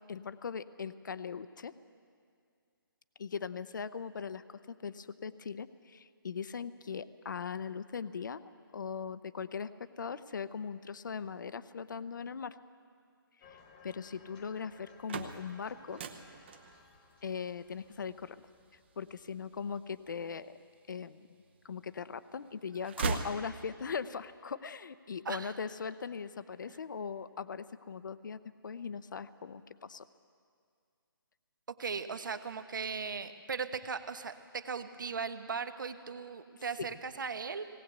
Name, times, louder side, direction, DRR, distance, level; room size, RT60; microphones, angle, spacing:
voice 1, 0.1-1.7 3.2-8.4 8.7-9.7 10.0-12.6 13.5-13.6 13.8-16.0 17.2-18.4 19.0-20.5 20.9-21.3 21.6-30.1 36.8-36.9, left 6 dB, 55° left, 14 dB, 0.7 m, -40 dB
sound 1, 13.4-20.4, left 4 dB, 20° left, 1.3 m, -61 dB
sound 2, 14.8-20.7 21.3-22.1 22.4-24.0, right 5 dB, 30° right, 0.8 m, -40 dB
voice 2, 31.7-37.6, right 5 dB, 60° right, 10 dB, 1.2 m, -38 dB
19.0 x 18.0 x 8.2 m, 2.2 s
hypercardioid pair, 170°, 12 cm